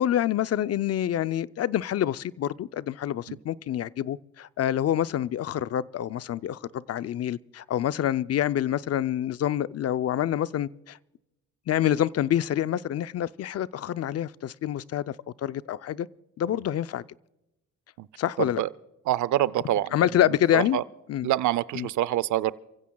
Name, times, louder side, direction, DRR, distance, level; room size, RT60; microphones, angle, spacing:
voice 1, 0.0-11.0 11.7-15.1 15.4-16.1 16.4-17.0 18.2-18.6 19.9-20.8 21.1-21.3 21.7-21.9, left 11 dB, 55° left, 0.6 m, -27 dB
voice 2, 18.4-18.7 19.1-19.9 20.5-20.8 21.2-22.5, right 13 dB, 75° right, 0.6 m, -25 dB
29.5 x 16.0 x 2.3 m
cardioid pair, 90°, 30 cm